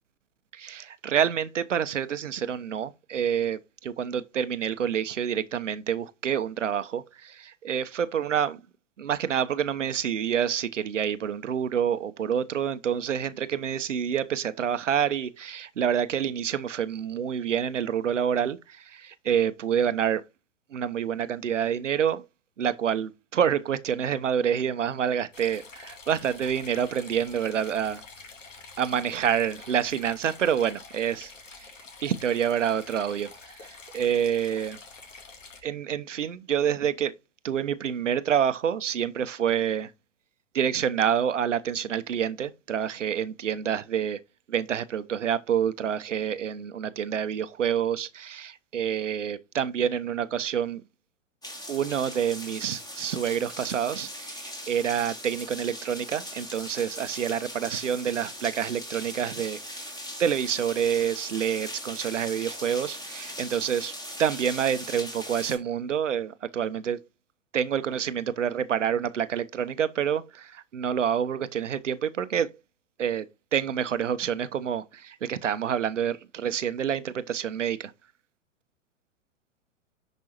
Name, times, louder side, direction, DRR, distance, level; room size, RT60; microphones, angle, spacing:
voice 1, 0.5-8.6 9.0-20.2 20.7-22.3 22.6-28.0 28.8-31.3 32.0-33.3 33.6-34.8 35.6-37.1 37.4-39.9 40.5-44.2 44.5-50.8 51.7-59.9 60.2-67.0 67.5-72.5 73.0-73.3 73.5-77.9, right 8 dB, 70° right, 1.0 m, -27 dB
sound 1, 25.3-35.6, left 4 dB, 75° left, 2.5 m, -47 dB
sound 2, 51.4-65.6, left 1 dB, 10° left, 3.1 m, -40 dB
10.5 x 5.5 x 2.9 m
figure-of-eight pair, 105°, 38 cm